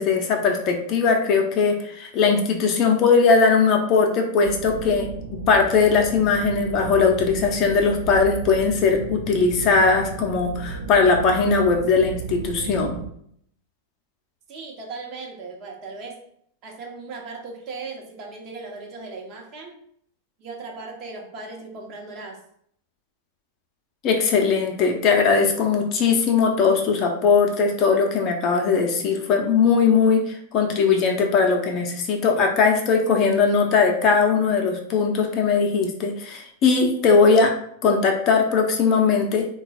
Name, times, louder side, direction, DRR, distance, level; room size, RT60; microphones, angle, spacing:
voice 1, 0.0-13.0 24.0-37.5 37.8-39.5, left 5 dB, 35° left, 3 dB, 0.6 m, -20 dB
sound 1, 4.4-13.1, right 5 dB, 65° right, 0.6 m, -34 dB
voice 2, 14.5-16.2 16.6-19.7 20.4-22.4, right 3 dB, 35° right, 0 dB, 0.9 m, -37 dB
3.7 x 2.3 x 4.1 m, 0.66 s
figure-of-eight pair, 90°, 0 cm